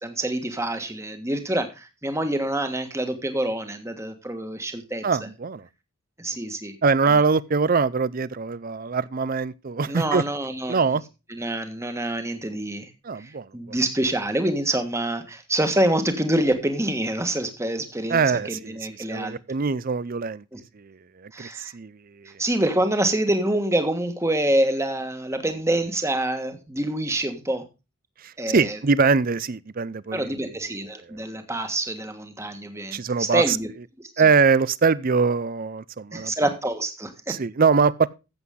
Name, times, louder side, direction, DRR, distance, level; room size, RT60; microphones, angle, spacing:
voice 1, 0.0-5.0 6.2-6.7 9.9-10.9 11.3-12.9 13.2-19.4 20.5-20.6 21.3-21.7 22.4-27.6 28.4-28.8 30.1-33.7 36.1-37.4, right 1 dB, 15° right, 1.4 m, -26 dB
voice 2, 5.0-5.7 6.8-10.2 10.7-11.0 13.0-13.8 18.1-20.4 20.7-22.3 28.2-30.4 32.9-33.6 34.2-36.3 37.3-38.1, right 5 dB, 40° right, 0.5 m, -23 dB
14.0 x 8.0 x 3.7 m
head